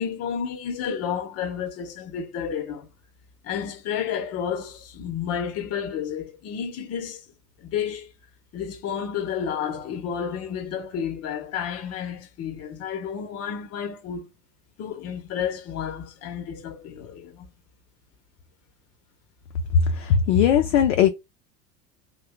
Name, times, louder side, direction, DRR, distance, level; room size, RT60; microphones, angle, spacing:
voice 1, 0.0-2.9 3.4-7.3 7.6-8.1 8.5-14.3 14.8-17.5, left 8 dB, 30° left, 0.8 m, -31 dB
voice 2, 19.7-21.1, left 7 dB, 50° left, 0.5 m, -19 dB
2.7 x 2.2 x 3.4 m
figure-of-eight pair, 80°, 49 cm